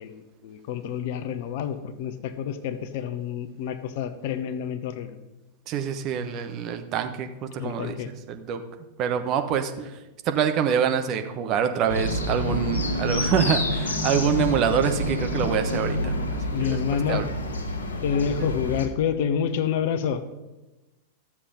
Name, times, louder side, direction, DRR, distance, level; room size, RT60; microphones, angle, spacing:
voice 1, 0.0-5.2 7.6-8.1 16.5-17.3 18.0-20.2, left 8 dB, 50° left, 11 dB, 0.8 m, -28 dB
voice 2, 5.7-8.6 9.0-9.9 10.3-16.8 17.1-17.4, right 8 dB, 35° right, 7 dB, 1.0 m, -26 dB
sound 1, 11.9-18.9, left 1 dB, 70° left, 1.3 m, -28 dB
13.0 x 7.3 x 5.1 m, 1.1 s
figure-of-eight pair, 90°, 0 cm